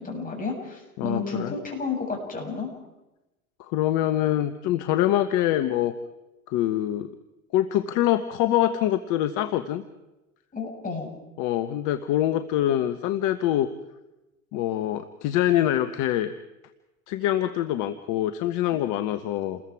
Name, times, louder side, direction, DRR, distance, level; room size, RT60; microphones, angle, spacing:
voice 1, 0.0-2.7 10.5-11.1 18.7-18.8, left 4 dB, 20° left, 1 dB, 7.4 m, -32 dB
voice 2, 1.0-1.5 3.6-5.9 6.5-7.1 7.5-9.8 11.4-13.7 14.5-16.3 17.1-19.6, left 12 dB, 45° left, 11 dB, 1.3 m, -24 dB
29.0 x 21.0 x 4.8 m, 0.98 s
hypercardioid pair, 95°, 42 cm